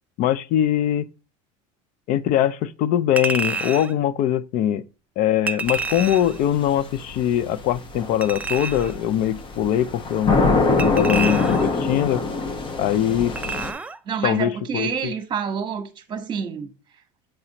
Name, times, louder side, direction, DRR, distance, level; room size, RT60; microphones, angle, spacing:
voice 1, 0.2-1.1 2.1-4.8 5.2-10.5 10.8-12.3 12.8-13.4 14.2-15.1, left 11 dB, 55° left, 0.5 m, -22 dB
Chink clink, 3.2-3.9 5.5-6.4 8.2-9.0 10.8-11.8 13.3-14.0 14.4-14.5, right 4 dB, 10° right, 0.3 m, -29 dB
sound 1, 5.7-13.7, left 3 dB, 30° left, 0.8 m, -24 dB
voice 2, 14.0-16.7, right 7 dB, 30° right, 1.2 m, -28 dB
7.7 x 4.2 x 2.9 m
supercardioid pair, 130°, 16 cm